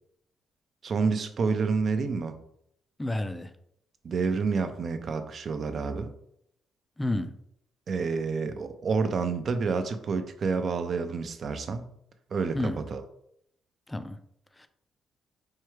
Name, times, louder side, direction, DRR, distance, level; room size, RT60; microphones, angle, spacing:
voice 1, 0.8-2.4 4.0-6.1 7.9-11.9 12.3-13.0, right 4 dB, 50° right, 9 dB, 0.4 m, -29 dB
voice 2, 3.0-3.5 7.0-7.4 12.5-12.8 13.9-14.2 14.6-14.7, left 1 dB, 10° left, 9 dB, 0.4 m, -30 dB
4.4 x 2.3 x 3.2 m, 0.73 s
cardioid pair, 90°, 0 cm